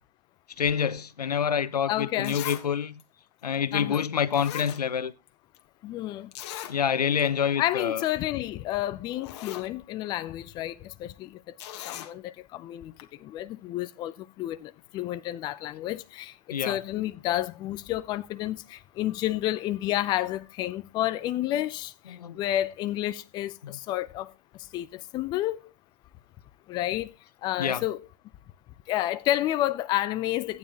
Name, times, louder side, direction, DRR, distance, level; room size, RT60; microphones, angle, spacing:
voice 1, 0.6-2.9 3.4-5.1 6.7-8.0 16.5-16.8 22.1-22.4 23.6-23.8 27.6-27.8, left 7 dB, 85° left, 0.9 m, -27 dB
Zipper (clothing), 1.7-1.8 2.2-2.7 3.0-3.1 3.9-4.0 4.3-5.3 5.5-5.6 6.3-6.8 7.2-7.3 7.6-7.8 8.7-8.8 9.1-9.7 11.6-12.1 13.0-13.1, left 12 dB, 45° left, 1.5 m, -39 dB
voice 2, 1.9-2.4 3.7-4.0 5.8-6.3 7.6-11.4 11.9-12.9 13.2-24.3 24.7-25.6 26.7-27.1 27.4-28.0 28.9-30.6, left 14 dB, 20° left, 0.5 m, -30 dB
15.0 x 9.4 x 2.9 m
hypercardioid pair, 130°, 20 cm